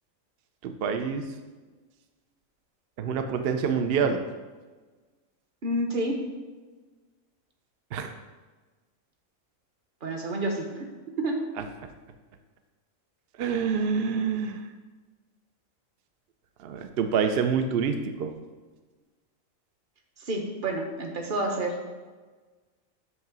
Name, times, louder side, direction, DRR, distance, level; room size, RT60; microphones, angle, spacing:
voice 1, 0.6-1.2 3.0-4.2 7.9-8.1 13.4-14.6 16.6-18.3, right 6 dB, 60° right, 7 dB, 0.6 m, -26 dB
voice 2, 5.6-6.2 10.0-10.9 11.2-11.4 20.2-21.8, right 1 dB, 45° right, 1 dB, 1.0 m, -29 dB
8.0 x 2.8 x 6.0 m, 1.3 s
omnidirectional pair, 1.4 m